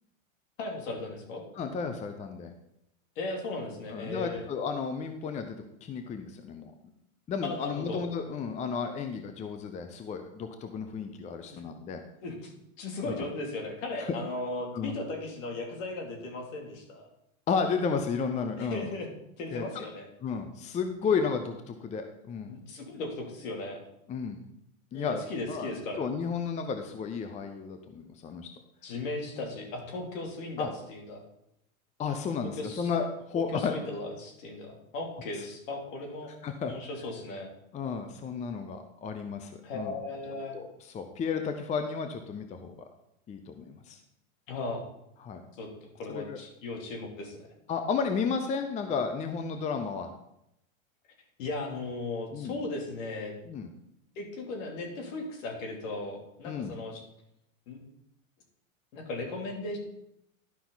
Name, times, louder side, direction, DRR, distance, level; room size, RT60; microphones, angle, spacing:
voice 1, 0.6-1.4 3.2-4.5 7.4-8.0 11.5-11.6 12.2-17.1 18.6-19.1 19.4-20.1 22.5-23.8 24.9-26.0 28.8-31.2 32.4-32.9 33.5-36.3 36.7-37.5 39.6-40.6 44.5-44.8 45.6-45.7 45.9-47.5 51.4-53.3 54.2-57.0 57.7-57.8 58.9-59.8, left 2 dB, 65° left, 2 dB, 2.9 m, -37 dB
voice 2, 1.5-2.5 3.9-6.9 7.3-12.0 13.0-13.2 14.0-14.1 14.7-14.9 17.5-18.9 19.5-19.8 20.2-22.5 24.1-24.4 24.9-28.5 30.6-30.7 32.0-33.7 35.4-35.5 36.4-36.7 37.7-39.9 40.5-40.7 40.9-42.7 43.3-44.0 45.2-45.4 46.1-46.4 47.7-50.1 52.3-52.6 53.4-53.7 56.4-56.7, left 5 dB, 15° left, 7 dB, 0.6 m, -33 dB
11.5 x 5.8 x 4.0 m, 0.79 s
supercardioid pair, 125°, 42 cm